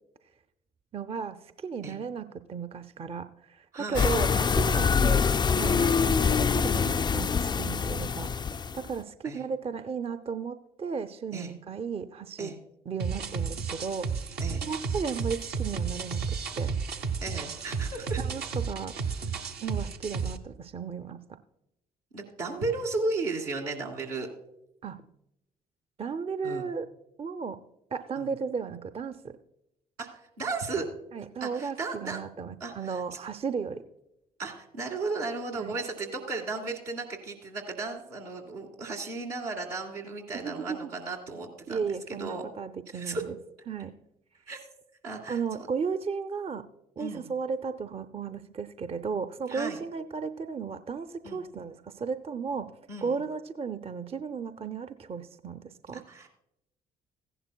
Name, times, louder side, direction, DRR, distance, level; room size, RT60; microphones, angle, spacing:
voice 1, 0.9-5.2 5.6-12.5 12.9-14.1 14.6-16.8 18.2-19.0 19.6-21.2 24.8-25.0 26.0-26.9 27.2-27.6 27.9-29.4 31.1-33.8 35.6-35.7 40.3-40.8 41.7-43.4 43.7-43.9 45.3-46.7 47.0-52.7 53.0-56.0, right 5 dB, 30° right, 10 dB, 0.6 m, -35 dB
voice 2, 3.7-4.1 4.7-4.9 9.2-9.4 11.3-11.5 12.4-12.6 14.4-14.6 17.2-18.2 22.1-24.3 26.4-26.6 28.2-28.3 30.0-30.9 31.4-32.2 32.6-33.2 34.4-42.5 42.9-43.2 44.5-44.6 45.0-45.7 47.0-47.3 49.5-49.8 51.2-51.4 52.9-53.2 55.9-56.3, right 3 dB, 85° right, -2 dB, 2.1 m, -35 dB
sound 1, 3.9-8.9, left 6 dB, 25° left, 0.3 m, -25 dB
sound 2, 13.0-20.4, right 5 dB, 55° right, 0.9 m, -32 dB
15.5 x 11.0 x 2.3 m, 0.84 s
hypercardioid pair, 50°, 19 cm